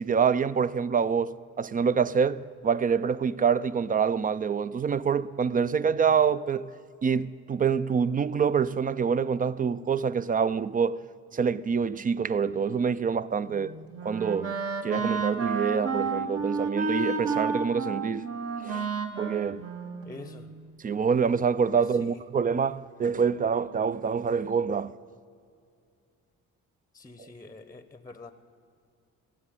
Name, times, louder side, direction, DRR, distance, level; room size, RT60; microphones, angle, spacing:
voice 1, 0.0-6.7 7.0-11.0 11.3-13.7 14.0-14.6 14.8-18.3 18.6-18.9 19.2-19.7 20.8-24.9 27.2-27.3, right 6 dB, 30° right, 0.4 m, -26 dB
Wind instrument woodwind instrument, 13.5-20.6, right 4 dB, 50° right, 1.3 m, -31 dB
voice 2, 20.0-20.5 22.0-22.2 26.9-28.3, left 2 dB, 10° left, 0.7 m, -45 dB
16.0 x 7.3 x 10.0 m
cardioid pair, 90°, 30 cm